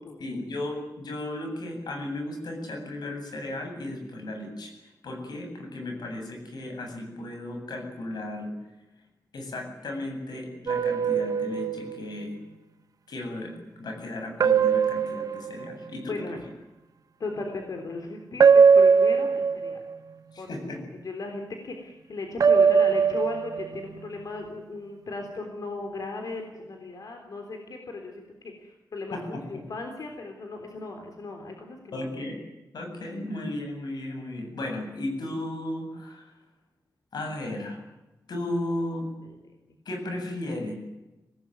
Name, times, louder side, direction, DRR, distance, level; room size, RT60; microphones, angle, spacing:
voice 1, 0.2-8.5 9.3-12.3 13.1-16.4 20.3-20.8 29.1-29.4 31.9-32.4 32.7-36.3 37.1-37.8 38.3-39.1 39.8-40.7, left 1 dB, 90° left, 4 dB, 8.0 m, -35 dB
sound 1, 10.7-12.0 14.4-15.9 18.4-19.9 22.4-23.9, right 6 dB, 60° right, 1.2 m, -20 dB
voice 2, 17.2-19.8 20.4-20.8 21.0-32.1 39.2-39.3, left 3 dB, 60° left, 4 dB, 3.6 m, -37 dB
25.5 x 18.5 x 9.5 m, 1.0 s
wide cardioid pair, 175°, 7 cm